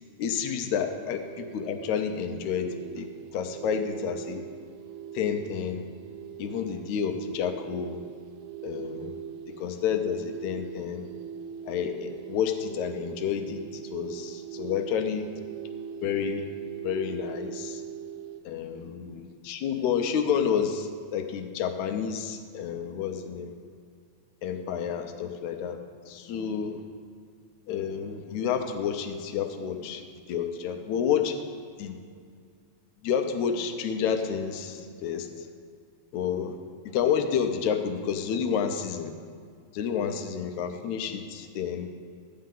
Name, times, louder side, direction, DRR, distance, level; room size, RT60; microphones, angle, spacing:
voice 1, 0.2-3.1 3.3-4.5 5.1-5.9 6.4-8.0 8.6-9.2 9.5-11.1 11.7-15.3 16.0-16.5 16.8-17.8 18.5-23.5 24.4-26.8 27.7-30.0 30.3-31.4 31.8-32.0 33.0-35.5 36.1-36.6 36.9-39.1 39.7-41.9, left 7 dB, 80° left, 6 dB, 2.0 m, -30 dB
sound 1, 1.2-18.4, right 8 dB, 85° right, 2.0 m, -41 dB
13.0 x 9.5 x 3.8 m, 2.2 s
omnidirectional pair, 3.4 m